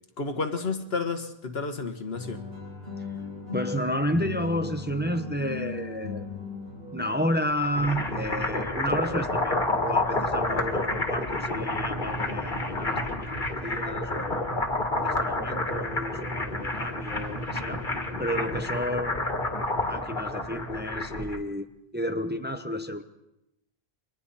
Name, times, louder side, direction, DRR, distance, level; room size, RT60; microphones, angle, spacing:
voice 1, 0.2-2.4, left 4 dB, 75° left, 6 dB, 1.7 m, -31 dB
sound 1, 2.1-7.5, left 4 dB, 65° right, 5.5 m, -37 dB
voice 2, 3.5-6.7 6.9-14.5 15.0-17.8 18.2-19.3 19.9-21.7 21.9-23.0, equal, 10° right, 7 dB, 0.9 m, -31 dB
sound 2, 7.5-21.4, left 2 dB, 50° left, 2.2 m, -29 dB
30.0 x 24.0 x 4.2 m, 0.88 s
omnidirectional pair, 1.0 m